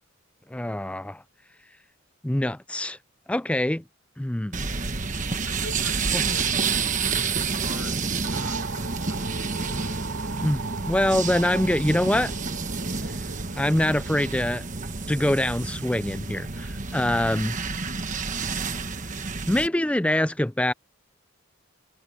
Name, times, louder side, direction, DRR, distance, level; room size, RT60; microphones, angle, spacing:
voice 1, 0.5-1.2 2.2-3.0 3.3-3.8 4.2-4.7 6.1-6.2 10.4-12.3 12.9-13.2 13.5-17.6 19.5-20.7, left 1 dB, 5° left, 0.4 m, -25 dB
sound 1, 4.5-19.7, right 4 dB, 40° right, 1.3 m, -29 dB
voice 2, 5.4-10.3, left 3 dB, 90° left, 4.8 m, -45 dB
sound 2, 8.2-14.7, right 4 dB, 85° right, 3.8 m, -37 dB
head